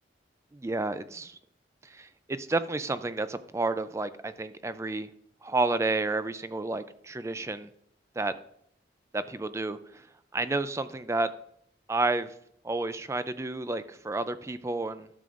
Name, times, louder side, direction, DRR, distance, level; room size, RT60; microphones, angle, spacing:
voice 1, 0.5-1.4 1.8-5.1 5.4-7.7 8.2-8.3 9.1-10.1 10.3-11.3 11.9-12.3 12.6-15.1, right 2 dB, 15° right, 12 dB, 0.3 m, -31 dB
12.5 x 6.9 x 2.5 m, 0.70 s
head